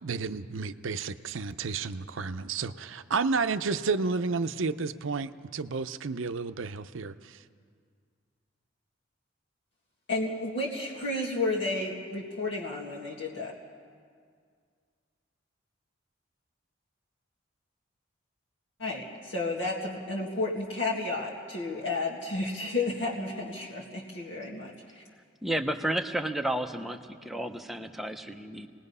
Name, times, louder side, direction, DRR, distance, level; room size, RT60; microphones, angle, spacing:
voice 1, 0.0-7.4, right 4 dB, 75° right, 11 dB, 0.6 m, -31 dB
voice 2, 10.1-13.5 18.8-25.0, left 2 dB, 65° left, -4 dB, 2.0 m, -32 dB
voice 3, 25.4-28.7, right 1 dB, ahead, 4 dB, 0.7 m, -32 dB
27.0 x 19.5 x 5.5 m, 2.1 s
head